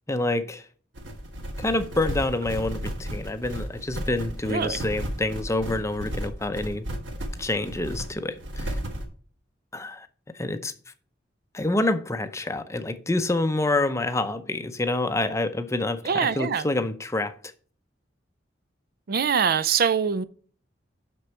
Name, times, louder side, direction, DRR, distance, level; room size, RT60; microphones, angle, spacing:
voice 1, 0.1-0.6 1.6-6.9 7.4-8.8 9.7-10.1 10.3-10.7 11.5-17.4, left 2 dB, 15° left, 0.6 m, -27 dB
sound 1, 0.9-9.1, equal, 75° right, 1.5 m, -33 dB
voice 2, 4.5-4.8 16.0-16.7 19.1-20.2, right 6 dB, 55° right, 0.5 m, -23 dB
6.4 x 6.1 x 4.4 m
head